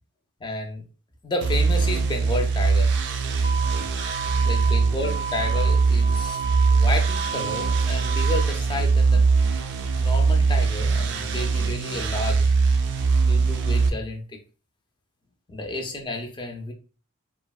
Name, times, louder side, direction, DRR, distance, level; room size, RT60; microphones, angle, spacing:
voice 1, 0.4-0.8 1.2-2.9 4.4-6.4 6.7-9.3 10.0-12.5 13.2-14.2 15.5-16.7, left 2 dB, 20° left, 3 dB, 0.4 m, -31 dB
sound 1, 1.4-13.9, right 4 dB, 55° right, 0.4 m, -21 dB
sound 2, 3.4-8.4, right 6 dB, 90° left, 0.9 m, -33 dB
3.1 x 2.1 x 2.3 m, 0.36 s
head